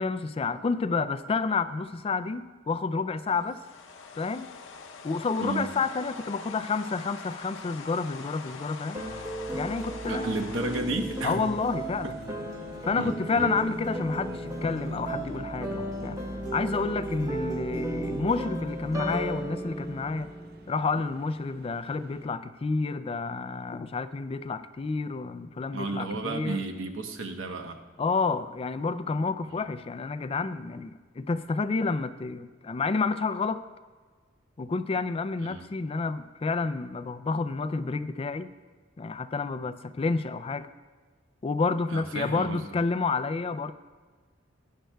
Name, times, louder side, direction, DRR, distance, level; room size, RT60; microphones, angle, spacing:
voice 1, 0.0-3.6 4.2-4.5 5.0-9.0 9.5-10.6 11.2-12.2 12.8-20.3 20.7-26.6 28.0-33.6 34.6-38.5 39.0-40.7 41.4-43.7, left 4 dB, 30° left, 12 dB, 0.3 m, -30 dB
sound 1, 3.3-12.5, left 4 dB, 75° left, 0.7 m, -44 dB
sound 2, 8.9-21.1, right 1 dB, 20° right, 0.9 m, -35 dB
sound 3, 10.1-22.3, right 2 dB, 50° right, 0.6 m, -45 dB
voice 2, 10.1-11.4 12.0-12.1 13.0-13.5 25.7-27.8 35.4-35.7 41.9-42.6, right 2 dB, 80° right, 5 dB, 1.0 m, -32 dB
17.5 x 10.0 x 2.3 m, 1.5 s
head